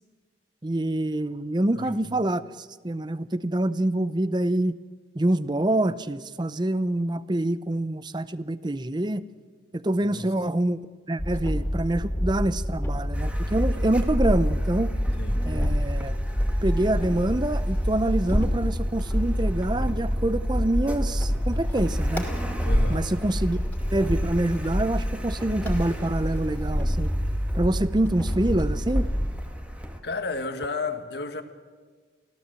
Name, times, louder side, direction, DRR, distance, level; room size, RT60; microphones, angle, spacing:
voice 1, 0.6-4.8 5.1-9.3 9.7-10.8 11.1-14.9 15.5-16.2 16.6-22.3 22.9-23.6 23.9-27.1 27.5-29.1, right 1 dB, 20° right, 0.6 m, -26 dB
voice 2, 1.7-2.1 10.0-10.3 15.2-15.4 22.6-23.1 30.0-31.4, left 3 dB, 55° left, 1.6 m, -32 dB
sound 1, 11.2-29.5, equal, 10° left, 2.8 m, -28 dB
Car, 13.1-30.0, equal, 5° right, 1.6 m, -31 dB
25.0 x 16.5 x 7.7 m
head